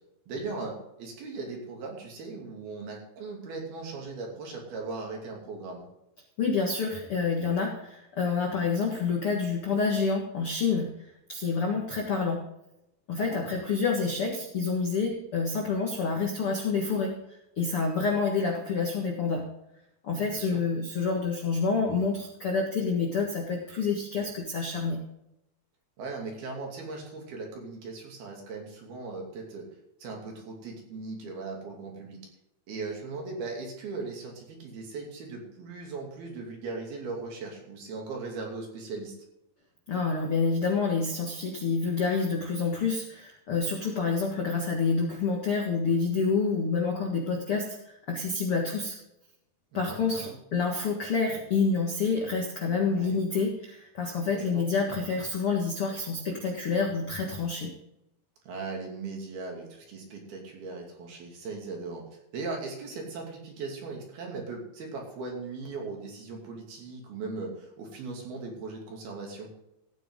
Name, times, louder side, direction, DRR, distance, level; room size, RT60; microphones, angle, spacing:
voice 1, 0.3-5.8 13.2-13.5 20.1-20.6 26.0-29.7 30.0-32.2 32.7-39.2 49.7-50.3 52.9-53.2 54.3-54.7 58.4-69.5, right 3 dB, 55° right, 0 dB, 4.3 m, -38 dB
voice 2, 6.4-10.9 11.3-12.4 13.1-19.4 20.0-25.0 39.9-47.8 48.1-49.0 49.7-57.7, left 4 dB, 85° left, 0 dB, 1.2 m, -28 dB
15.5 x 9.1 x 3.8 m, 0.85 s
omnidirectional pair, 5.5 m